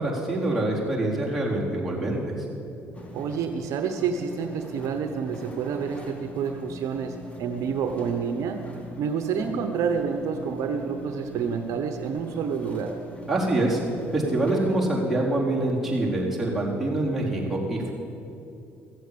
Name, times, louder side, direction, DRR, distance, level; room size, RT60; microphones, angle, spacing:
voice 1, 0.0-2.2 13.3-13.8 14.1-17.9, right 1 dB, 5° right, -5 dB, 4.0 m, -25 dB
sound 1, 2.9-14.9, right 1 dB, 20° left, 2.3 m, -42 dB
voice 2, 3.1-8.6 9.0-12.9, right 6 dB, 65° right, 6 dB, 1.0 m, -28 dB
14.5 x 7.9 x 8.7 m, 2.8 s
supercardioid pair, 80°, 6 cm